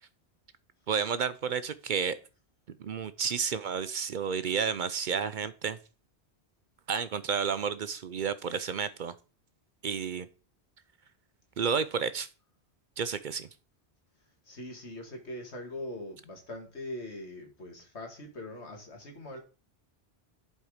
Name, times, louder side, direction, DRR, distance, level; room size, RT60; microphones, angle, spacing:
voice 1, 0.9-2.2 2.8-5.8 6.9-9.1 9.8-10.3 11.6-12.3 13.0-13.5, right 6 dB, 55° right, 0.6 m, -31 dB
voice 2, 14.4-19.4, left 1 dB, 80° left, 2.4 m, -42 dB
11.0 x 4.4 x 4.9 m
omnidirectional pair, 1.1 m